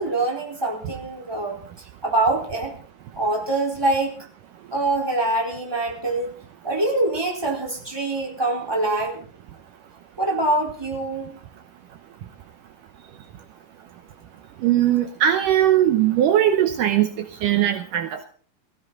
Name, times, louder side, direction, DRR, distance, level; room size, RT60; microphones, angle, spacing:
voice 1, 0.0-1.6 2.0-2.7 3.1-4.2 4.7-6.3 6.6-9.2 10.2-11.4, right 2 dB, 5° right, -1 dB, 4.0 m, -24 dB
voice 2, 14.6-17.1 17.4-18.2, right 11 dB, 70° right, 8 dB, 2.4 m, -19 dB
17.5 x 16.5 x 4.0 m, 0.43 s
omnidirectional pair, 4.1 m